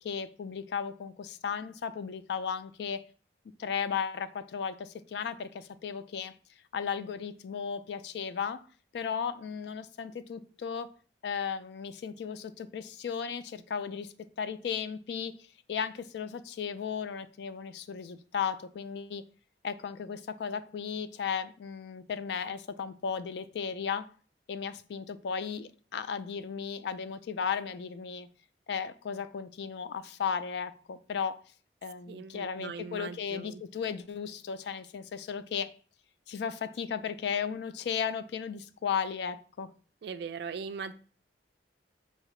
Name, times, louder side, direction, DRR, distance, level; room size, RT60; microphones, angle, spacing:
voice 1, 0.0-3.0 3.6-6.3 6.7-8.6 8.9-10.9 11.2-15.3 15.7-19.2 19.6-24.1 24.5-28.3 28.7-31.4 31.8-35.7 36.3-39.7, left 7 dB, 70° left, 0.3 m, -35 dB
voice 2, 32.1-33.6 40.0-40.9, right 5 dB, 65° right, 0.3 m, -40 dB
5.7 x 2.7 x 3.1 m
head